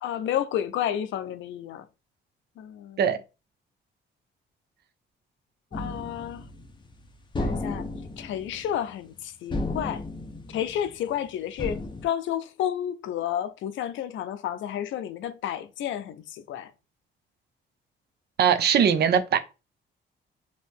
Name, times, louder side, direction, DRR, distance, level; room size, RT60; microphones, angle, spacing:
voice 1, 0.0-1.8 2.6-3.0 5.7-6.5 7.4-7.9 8.2-10.0 10.5-16.7, left 10 dB, 75° left, 0.5 m, -31 dB
sound 1, 5.7-6.9 7.3-9.2 9.5-11.2 11.6-12.1, left 2 dB, 25° left, 0.7 m, -33 dB
voice 2, 18.4-19.4, right 8 dB, 55° right, 0.5 m, -20 dB
2.8 x 2.6 x 3.4 m
cardioid pair, 90°, 20 cm